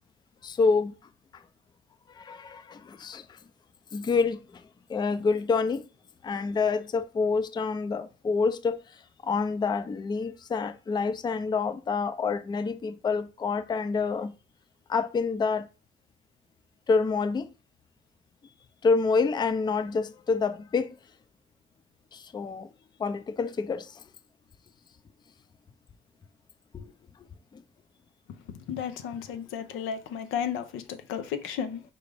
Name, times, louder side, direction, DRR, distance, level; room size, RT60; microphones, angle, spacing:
voice 1, 0.4-0.9 2.2-3.2 3.9-4.4 4.9-5.8 6.2-8.8 9.2-14.3 14.9-15.7 16.9-17.5 18.8-20.9 22.1-22.7 23.0-23.9 26.7-26.8, left 4 dB, 20° left, 0.4 m, -27 dB
voice 2, 28.5-31.8, left 8 dB, 90° left, 0.6 m, -33 dB
5.0 x 2.5 x 3.3 m
cardioid pair, 90°, 20 cm